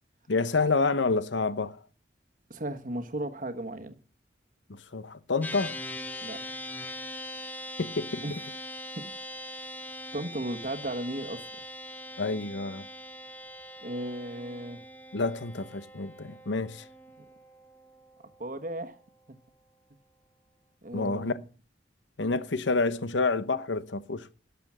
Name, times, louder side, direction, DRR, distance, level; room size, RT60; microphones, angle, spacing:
voice 1, 0.3-1.8 4.7-5.8 7.8-8.2 12.2-12.9 15.1-16.9 20.9-21.3 22.2-24.3, left 3 dB, 90° left, 0.9 m, -28 dB
voice 2, 2.5-4.0 6.2-6.4 8.2-8.4 9.0-9.1 10.1-11.4 13.8-14.8 17.2-17.3 18.4-19.0 20.8-21.4, right 1 dB, 45° right, 1.2 m, -35 dB
sound 1, 5.4-19.0, left 1 dB, 10° left, 0.8 m, -42 dB
12.0 x 7.0 x 6.1 m
head